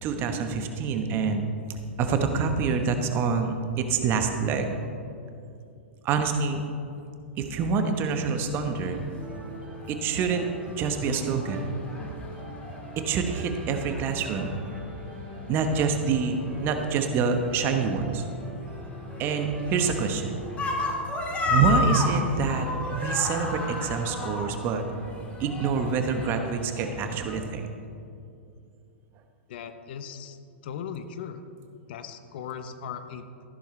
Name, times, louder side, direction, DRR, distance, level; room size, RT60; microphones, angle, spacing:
voice 1, 0.0-1.4 2.0-4.7 6.0-6.6 7.4-9.0 9.9-10.5 10.8-11.7 13.0-14.6 15.5-18.2 19.2-20.4 21.5-22.7 22.9-24.8 25.4-27.7, right 5 dB, 35° right, 6 dB, 1.1 m, -26 dB
sound 1, 8.1-27.4, left 2 dB, 20° left, 1.9 m, -35 dB
sound 2, 9.2-23.8, right 2 dB, 15° right, 1.7 m, -44 dB
voice 2, 29.5-30.4 30.6-31.4 31.9-33.5, left 7 dB, 55° left, 9 dB, 0.8 m, -38 dB
14.0 x 11.5 x 3.3 m, 2.5 s
figure-of-eight pair, 105°, 7 cm